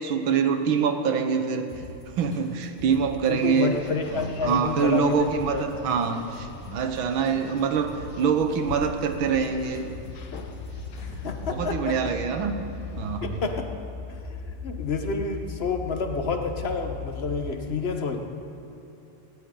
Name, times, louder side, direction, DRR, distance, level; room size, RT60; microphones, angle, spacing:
voice 1, 0.0-1.7 2.2-3.8 4.1-9.9 11.5-12.6 13.0-13.4, right 6 dB, 70° right, 7 dB, 1.8 m, -25 dB
sound 1, 1.7-11.6, left 1 dB, 20° left, 3.3 m, -44 dB
voice 2, 3.3-5.6 11.0-12.1 13.2-13.7 14.1-18.2, left 4 dB, 40° left, 5 dB, 1.0 m, -29 dB
sound 2, 3.7-13.5, left 4 dB, 70° left, 1.8 m, -45 dB
sound 3, 9.5-17.5, left 5 dB, 20° right, 1.0 m, -38 dB
18.0 x 18.0 x 3.8 m, 3.0 s
omnidirectional pair, 2.4 m